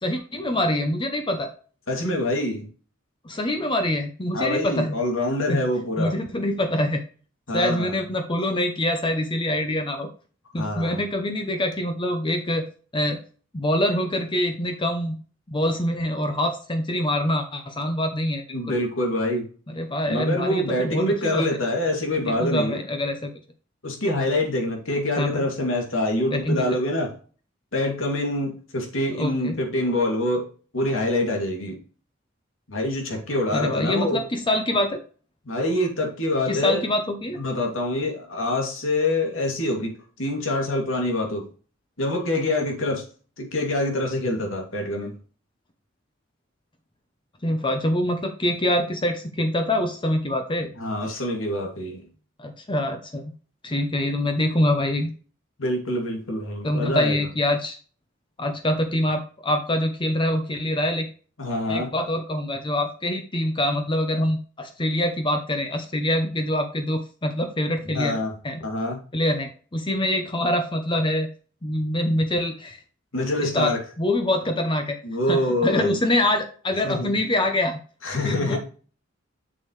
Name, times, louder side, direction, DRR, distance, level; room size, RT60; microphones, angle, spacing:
voice 1, 0.0-1.5 3.2-5.0 5.5-5.6 6.0-7.0 7.5-10.1 10.5-12.7 12.9-13.2 13.5-15.2 15.5-18.8 19.7-21.6 22.2-23.3 25.2-25.5 26.3-26.7 29.1-29.6 33.5-35.0 36.5-37.4 47.4-50.7 52.4-53.2 53.6-55.1 56.6-57.8 58.4-61.1 61.7-68.2 68.4-68.6 69.1-71.3 71.6-72.8 73.4-75.0 75.3-77.8 78.2-78.6, left 1 dB, 25° left, 6 dB, 0.8 m, -25 dB
voice 2, 1.9-2.7 4.3-6.1 7.5-8.0 10.6-11.0 18.5-19.5 20.1-22.8 23.8-27.2 27.7-30.5 30.7-31.8 32.7-34.2 35.4-36.8 37.4-41.5 42.0-43.0 43.4-45.1 50.8-52.1 55.6-57.2 61.4-61.9 67.8-68.3 68.6-69.0 73.1-73.8 75.0-75.9 76.8-77.1 78.0-78.6, left 1 dB, 85° left, 1 dB, 2.5 m, -25 dB
7.4 x 6.5 x 3.2 m, 0.39 s
head